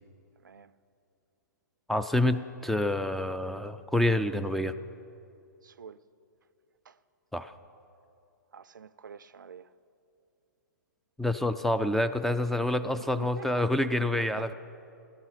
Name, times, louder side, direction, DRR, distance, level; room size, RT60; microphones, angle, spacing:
voice 1, 1.9-4.8 7.3-7.5 11.2-14.5, left 1 dB, ahead, 0.3 m, -27 dB
voice 2, 5.6-6.0 6.9-7.0 8.5-9.7 13.2-13.9 14.3-14.5, right 6 dB, 75° right, 0.5 m, -47 dB
16.0 x 11.5 x 5.8 m
figure-of-eight pair, 115°, 10 cm